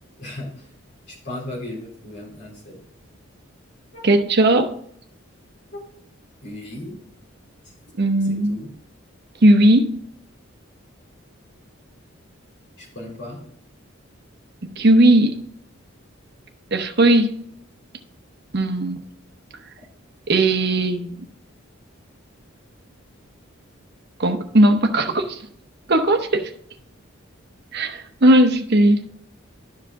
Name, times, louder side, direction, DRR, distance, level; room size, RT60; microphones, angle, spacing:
voice 1, 0.2-0.7 1.1-2.8 3.9-4.0 5.7-5.8 6.4-7.0 8.3-8.7 12.8-13.4, left 1 dB, 55° left, 3.3 m, -36 dB
voice 2, 4.0-4.7 8.0-8.6 9.4-10.0 14.8-15.4 16.7-17.4 18.5-19.0 20.3-21.3 24.2-25.4 25.9-26.5 27.7-29.0, right 1 dB, 55° right, 0.8 m, -17 dB
11.5 x 4.9 x 3.6 m
head